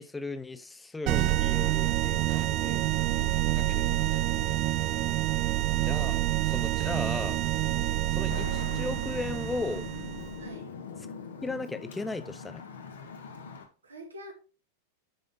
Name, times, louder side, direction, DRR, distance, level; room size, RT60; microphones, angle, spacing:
voice 1, 0.0-2.9 3.5-4.3 5.8-7.4 8.1-9.9 11.4-12.6, left 3 dB, 10° left, 0.8 m, -37 dB
sound 1, 1.1-10.5, right 16 dB, 40° right, 0.3 m, -28 dB
voice 2, 2.7-3.4 4.7-5.2 10.4-10.7 13.8-14.3, right 1 dB, 75° right, 2.0 m, -47 dB
Traffic noise roadway noise, 8.3-13.7, left 5 dB, 65° left, 1.3 m, -42 dB
9.2 x 5.3 x 3.5 m
figure-of-eight pair, 90°, 0 cm